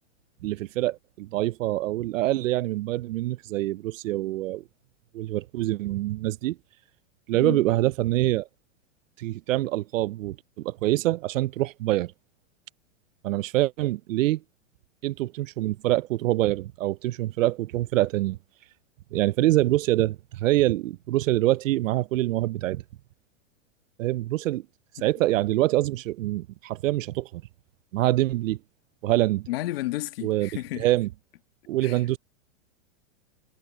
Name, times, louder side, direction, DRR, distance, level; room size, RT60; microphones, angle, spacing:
voice 1, 0.4-4.6 5.1-6.6 7.3-8.5 9.2-12.1 13.2-14.4 15.0-18.4 19.1-22.8 24.0-24.6 25.0-27.4 27.9-28.6 29.0-29.5 30.2-30.5 30.8-31.1 31.7-32.2, right 16 dB, 80° right, 0.6 m, -25 dB
voice 2, 29.5-30.9 31.8-32.0, left 16 dB, 50° left, 1.9 m, -32 dB
supercardioid pair, 170°, 39 cm